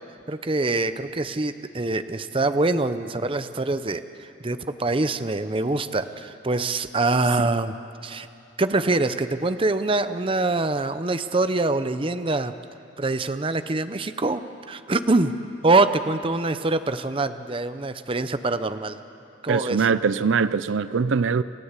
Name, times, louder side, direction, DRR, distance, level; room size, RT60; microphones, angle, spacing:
voice 1, 0.3-7.7 8.0-8.3 8.6-12.5 13.0-14.4 14.7-15.3 15.6-19.0 19.4-19.9, right 2 dB, 30° right, 0.7 m, -24 dB
voice 2, 19.5-21.4, right 5 dB, 80° right, 0.5 m, -22 dB
28.0 x 15.0 x 8.2 m
head